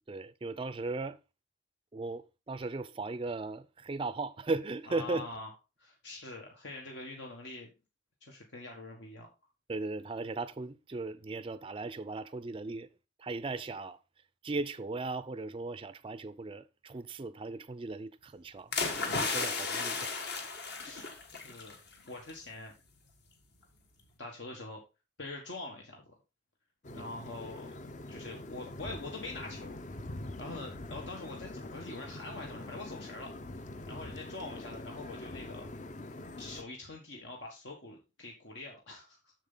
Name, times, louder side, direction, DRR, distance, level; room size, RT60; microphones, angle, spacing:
voice 1, 0.1-1.2 1.9-5.3 9.7-12.9 13.2-14.0 14.4-18.8 19.2-20.3 26.9-27.1, right 3 dB, 30° right, 0.4 m, -37 dB
voice 2, 4.9-5.5 5.8-7.7 8.2-9.3 20.8-21.0 21.4-21.8 22.1-22.7 24.2-24.8 25.2-26.1 26.9-27.7 28.1-29.8 30.4-33.3 33.9-35.7 36.3-39.3, left 2 dB, 75° left, 1.5 m, -44 dB
sound 1, 18.7-21.8 22.1-22.3, left 4 dB, 60° left, 1.7 m, -34 dB
sound 2, 26.8-36.6, left 2 dB, 40° left, 0.6 m, -44 dB
7.3 x 6.8 x 3.8 m
head